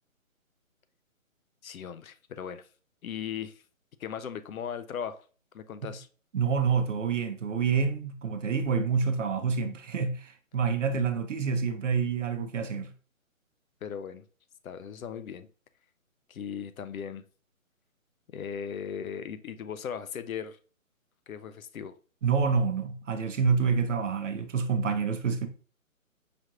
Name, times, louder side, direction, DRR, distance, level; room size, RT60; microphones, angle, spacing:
voice 1, 1.6-2.7 3.0-3.6 4.0-5.2 5.5-6.1 13.8-14.2 14.6-15.5 16.3-17.2 18.3-20.6 21.3-22.0, left 7 dB, 75° left, 0.6 m, -38 dB
voice 2, 6.3-12.9 22.2-25.5, right 5 dB, 60° right, 0.7 m, -27 dB
5.0 x 3.0 x 2.4 m
figure-of-eight pair, 150°, 42 cm